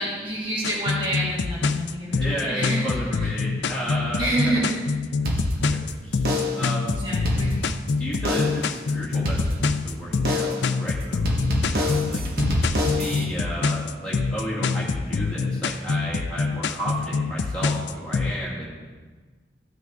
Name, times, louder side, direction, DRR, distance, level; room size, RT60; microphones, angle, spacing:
voice 1, 0.0-2.9 3.2-3.3 4.2-4.7 6.9-7.5, right 1 dB, 25° right, -5 dB, 1.9 m, -28 dB
sound 1, 0.6-18.3, left 4 dB, 70° left, 0.4 m, -26 dB
voice 2, 2.1-4.6 5.2-5.3 5.7-6.9 8.0-11.4 11.7-12.6 12.9-18.8, equal, 5° left, -7 dB, 2.3 m, -33 dB
Slow Drum Loop Transition, 5.2-5.9 6.2-6.7 7.1-7.9 8.2-8.7 9.2-9.9 10.2-10.7 11.2-13.2, left 1 dB, 50° right, 1.2 m, -26 dB
14.5 x 5.8 x 3.7 m, 1.4 s
head